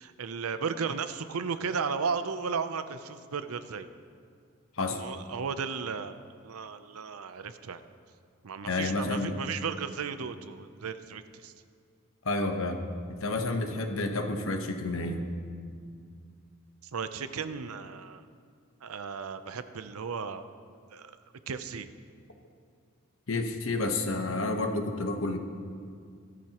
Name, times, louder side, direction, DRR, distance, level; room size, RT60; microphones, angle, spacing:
voice 1, 0.0-3.9 4.9-6.2 6.4-7.8 8.4-11.5 16.8-18.3 18.8-20.4 20.9-21.2 21.5-21.9, right 5 dB, 80° right, 11 dB, 0.6 m, -35 dB
voice 2, 8.6-9.4 12.2-12.8 13.1-15.2 23.3-25.4, left 2 dB, 65° left, 4 dB, 1.1 m, -30 dB
17.0 x 13.5 x 3.0 m, 2.2 s
head